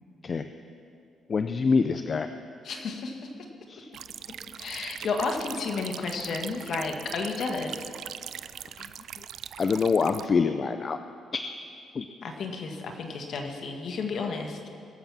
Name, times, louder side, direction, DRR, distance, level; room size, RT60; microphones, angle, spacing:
voice 1, 1.3-2.3 3.7-3.9 8.8-8.9 9.6-11.0 11.3-11.4 11.9-12.1, left 5 dB, 40° left, 9 dB, 0.5 m, -25 dB
voice 2, 2.6-3.3 4.6-7.9 12.2-14.7, left 4 dB, 60° left, 3 dB, 1.6 m, -32 dB
sound 1, 3.9-10.3, right 9 dB, 70° right, 0.4 m, -41 dB
21.5 x 7.2 x 6.0 m, 2.5 s
cardioid pair, 90°, 0 cm